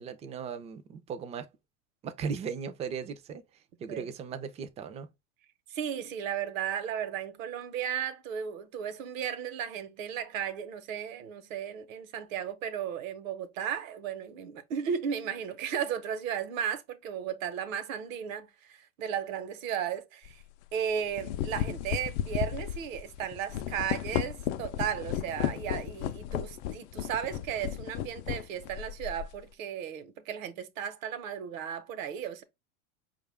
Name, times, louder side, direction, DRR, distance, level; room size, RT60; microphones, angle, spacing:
voice 1, 0.0-1.5 2.0-3.4 3.8-5.1, right 6 dB, 15° right, 0.4 m, -37 dB
voice 2, 5.7-20.4 20.7-32.4, right 8 dB, 70° right, 1.0 m, -35 dB
sound 1, 20.2-20.4 21.0-29.4, left 11 dB, 55° left, 0.5 m, -34 dB
5.0 x 2.4 x 3.4 m
hypercardioid pair, 110°, 41 cm